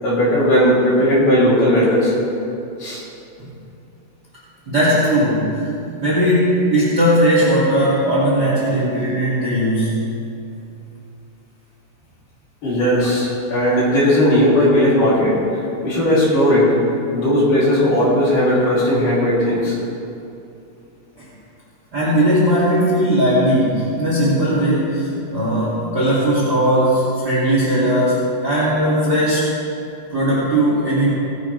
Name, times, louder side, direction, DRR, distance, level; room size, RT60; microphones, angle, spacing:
voice 1, 0.0-2.1 2.8-3.0 12.6-19.8, equal, 55° left, -8 dB, 4.5 m, -17 dB
voice 2, 4.7-5.7 6.0-10.0 21.2-21.3 21.9-29.5 30.1-31.1, equal, 30° right, -8 dB, 2.3 m, -18 dB
19.0 x 10.5 x 3.4 m, 2.7 s
omnidirectional pair, 4.9 m